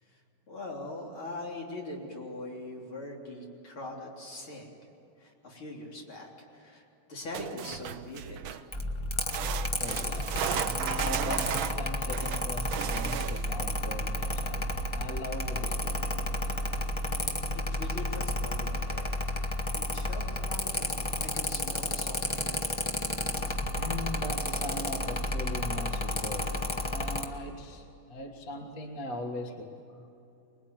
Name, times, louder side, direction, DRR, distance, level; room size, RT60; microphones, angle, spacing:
voice 1, 0.5-4.8 5.2-8.7 17.0-19.3 19.7-20.9 21.2-22.7, left 2 dB, 75° left, -2 dB, 4.4 m, -42 dB
sound 1, 7.3-8.7 9.3-13.6 16.9-17.0 17.3-17.4 18.1-18.2, right 10 dB, 75° right, 1.5 m, -35 dB
Mechanical fan, 8.7-27.3, left 1 dB, 15° left, 1.2 m, -32 dB
voice 2, 9.8-16.5 23.8-30.1, left 1 dB, 45° left, 3 dB, 2.0 m, -40 dB
25.0 x 21.5 x 9.2 m, 2.8 s
omnidirectional pair, 2.3 m